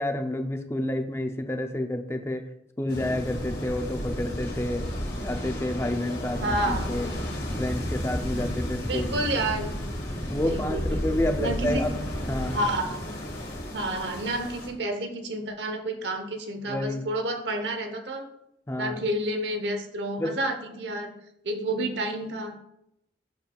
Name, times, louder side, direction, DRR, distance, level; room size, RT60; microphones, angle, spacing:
voice 1, 0.0-2.5 2.8-4.9 5.1-7.1 7.6-9.1 10.3-12.6 16.7-17.1 18.7-19.0 20.2-20.4, left 1 dB, 15° left, 6 dB, 0.5 m, -29 dB
sound 1, 2.9-14.7, equal, 90° left, 2.0 m, -32 dB
voice 2, 6.4-6.9 8.9-9.7 10.4-11.9 12.5-13.0 13.7-18.3 18.8-21.1 21.4-22.6, right 1 dB, 85° right, 6 dB, 0.9 m, -30 dB
7.9 x 6.8 x 2.3 m, 0.82 s
head